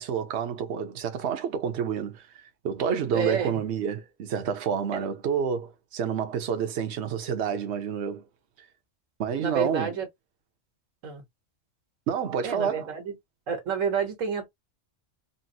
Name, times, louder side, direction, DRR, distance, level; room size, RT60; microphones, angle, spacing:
voice 1, 0.0-2.2 2.6-8.2 9.2-9.9 12.1-12.9, right 7 dB, 65° right, 1.0 m, -29 dB
voice 2, 3.1-3.6 4.9-5.1 9.4-10.1 11.0-11.2 12.4-13.1 13.5-14.5, right 6 dB, 80° right, 1.5 m, -29 dB
4.0 x 2.0 x 2.6 m
omnidirectional pair, 1.3 m